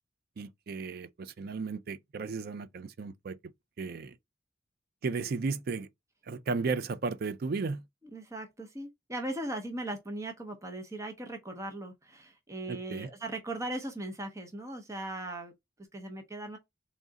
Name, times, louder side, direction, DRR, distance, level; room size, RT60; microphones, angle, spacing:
voice 1, 0.4-3.4 3.8-4.1 5.0-5.9 6.3-7.8 12.7-13.1, right 4 dB, 55° right, 0.4 m, -34 dB
voice 2, 8.1-15.5 15.9-16.6, right 1 dB, 15° right, 0.7 m, -38 dB
3.7 x 3.1 x 3.9 m
head